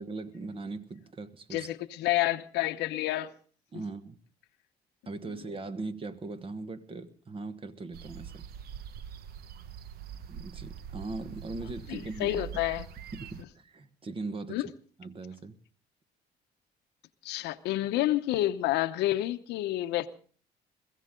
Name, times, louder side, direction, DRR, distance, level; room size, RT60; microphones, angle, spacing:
voice 1, 0.0-1.7 3.7-4.2 5.1-8.5 10.3-12.4 13.1-14.6 15.0-15.5, right 3 dB, 35° right, 1.3 m, -39 dB
voice 2, 1.5-3.3 11.9-12.9 14.5-14.7 17.2-20.1, left 15 dB, 85° left, 0.9 m, -29 dB
sound 1, 7.9-13.4, right 8 dB, 70° right, 0.9 m, -43 dB
22.0 x 15.0 x 3.8 m
cardioid pair, 110°, 17 cm